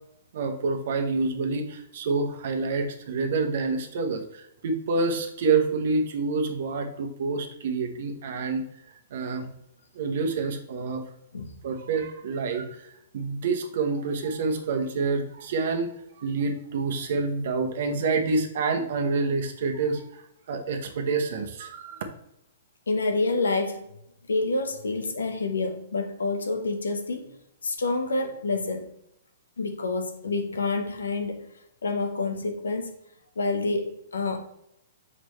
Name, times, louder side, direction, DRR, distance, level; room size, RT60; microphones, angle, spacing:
voice 1, 0.3-8.6 9.1-9.5 9.9-11.0 11.6-15.9 16.2-22.0, right 4 dB, 60° right, 1.0 m, -27 dB
voice 2, 22.9-23.8 24.3-27.3 27.6-28.9 29.6-31.4 31.8-32.9 33.4-34.4, left 3 dB, 85° left, 1.0 m, -28 dB
6.4 x 4.9 x 3.2 m
hypercardioid pair, 125°, 0 cm